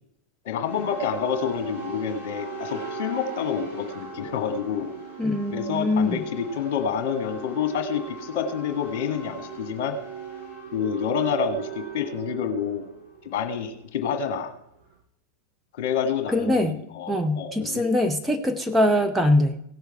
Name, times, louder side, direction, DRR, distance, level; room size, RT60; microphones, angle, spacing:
voice 1, 0.4-4.9 5.5-9.9 10.7-12.8 13.2-14.5 15.7-17.8, left 7 dB, 50° left, 6 dB, 1.5 m, -28 dB
sound 1, 0.6-14.9, right 5 dB, 70° right, 5.7 m, -38 dB
voice 2, 5.2-6.2 16.3-16.8 17.1-19.6, left 1 dB, 5° right, 5 dB, 0.7 m, -23 dB
17.0 x 6.8 x 4.4 m, 0.77 s
figure-of-eight pair, 90°, 0 cm